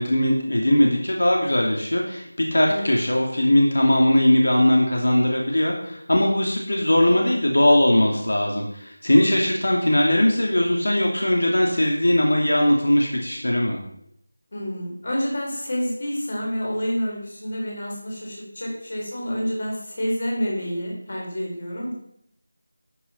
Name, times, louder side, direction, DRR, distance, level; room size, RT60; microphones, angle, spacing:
voice 1, 0.0-13.8, left 1 dB, 75° left, 0 dB, 2.8 m, -20 dB
voice 2, 14.5-21.9, equal, 35° left, -2 dB, 4.3 m, -28 dB
12.5 x 7.1 x 5.7 m, 0.73 s
figure-of-eight pair, 180°, 0 cm